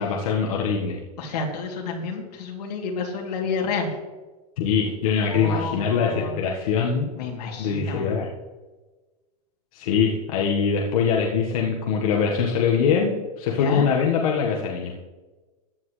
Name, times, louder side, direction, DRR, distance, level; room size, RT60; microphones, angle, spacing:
voice 1, 0.0-1.0 4.6-7.1 7.6-8.3 9.7-14.9, left 6 dB, 60° left, -1 dB, 1.6 m, -23 dB
voice 2, 1.2-4.0 5.2-6.6 7.2-8.2 13.6-13.9, left 4 dB, 80° left, 0 dB, 3.0 m, -30 dB
15.0 x 10.5 x 3.3 m, 1.2 s
supercardioid pair, 175°, 20 cm